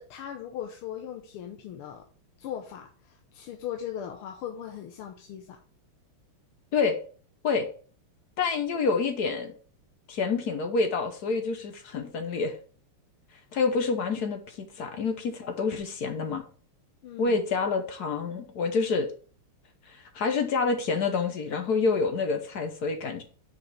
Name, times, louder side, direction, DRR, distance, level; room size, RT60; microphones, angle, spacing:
voice 1, 0.0-2.0 2.4-5.6 14.9-15.0 17.0-17.4, left 10 dB, 80° left, 3 dB, 1.7 m, -39 dB
voice 2, 8.4-9.5 10.1-12.6 13.5-16.4 17.2-19.1 19.9-23.2, left 4 dB, 60° left, 7 dB, 1.1 m, -27 dB
6.5 x 5.0 x 4.7 m, 0.42 s
omnidirectional pair, 2.4 m